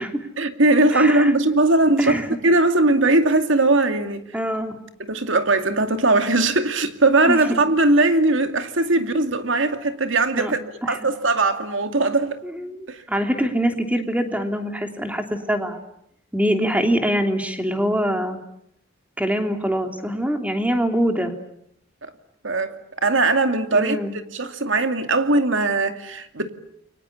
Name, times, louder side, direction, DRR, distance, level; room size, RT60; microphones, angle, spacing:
voice 1, 0.4-2.2 2.4-4.2 5.0-10.6 10.9-12.4 12.9-13.0 22.0-22.1 22.4-24.0 24.3-26.5, right 2 dB, 65° right, 2.5 m, -19 dB
voice 2, 0.9-1.3 2.0-2.4 4.3-4.8 7.2-7.6 10.3-10.5 10.8-11.0 12.5-15.8 16.3-18.4 19.2-21.3 23.7-24.1, equal, 5° right, 3.0 m, -24 dB
29.5 x 24.0 x 8.5 m
head